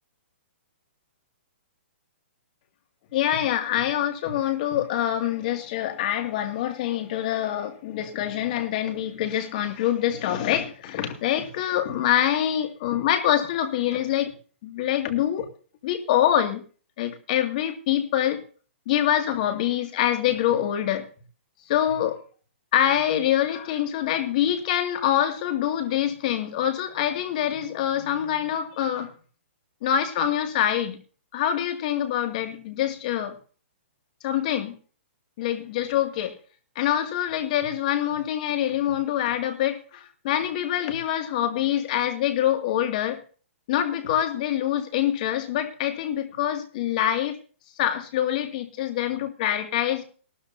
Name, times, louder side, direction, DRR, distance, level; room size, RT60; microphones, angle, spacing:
voice 1, 3.1-14.3 14.6-15.5 15.8-16.6 17.0-18.4 18.9-21.1 21.7-22.2 22.7-29.1 29.8-31.0 31.3-33.4 34.2-34.8 35.4-36.3 36.8-43.2 43.7-47.4 47.8-50.0, left 11 dB, 35° left, 7 dB, 2.3 m, -25 dB
18.0 x 13.0 x 2.8 m, 0.38 s
hypercardioid pair, 165°, 7 cm